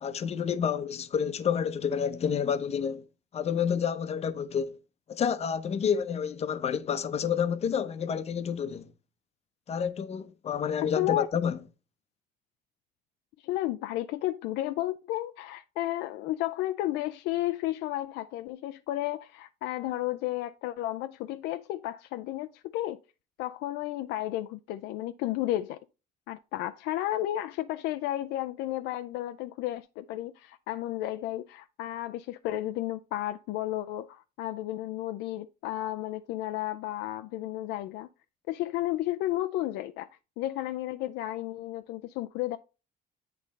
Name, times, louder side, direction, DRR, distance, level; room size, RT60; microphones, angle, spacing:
voice 1, 0.0-3.0 3.3-4.8 5.1-8.9 9.7-11.6, left 7 dB, 40° left, 0.7 m, -29 dB
voice 2, 11.0-11.3 13.4-23.0 23.4-25.8 26.3-38.1 38.5-40.1 40.4-42.6, left 14 dB, 90° left, 0.4 m, -32 dB
8.4 x 3.3 x 5.2 m
cardioid pair, 110°, 17 cm